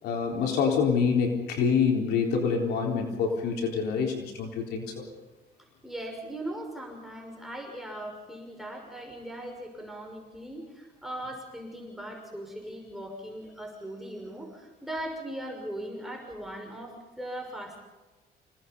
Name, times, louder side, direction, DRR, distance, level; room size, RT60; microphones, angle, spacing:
voice 1, 0.0-5.0, left 6 dB, 75° left, 1 dB, 4.0 m, -26 dB
voice 2, 5.8-17.8, right 1 dB, ahead, 1 dB, 6.0 m, -39 dB
28.5 x 18.5 x 5.5 m, 1.2 s
cardioid pair, 110°, 17 cm